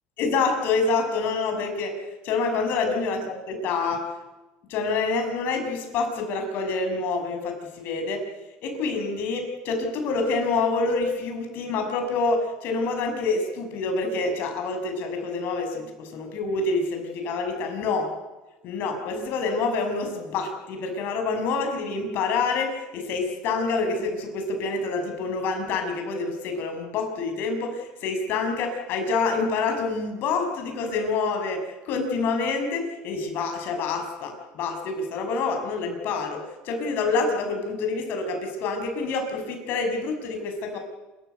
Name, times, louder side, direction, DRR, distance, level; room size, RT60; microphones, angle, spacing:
voice 1, 0.2-2.0 2.2-4.1 4.7-8.3 8.6-18.1 18.6-40.8, left 4 dB, 60° left, 5 dB, 6.4 m, -27 dB
27.5 x 14.5 x 8.2 m, 1.1 s
supercardioid pair, 110°, 4 cm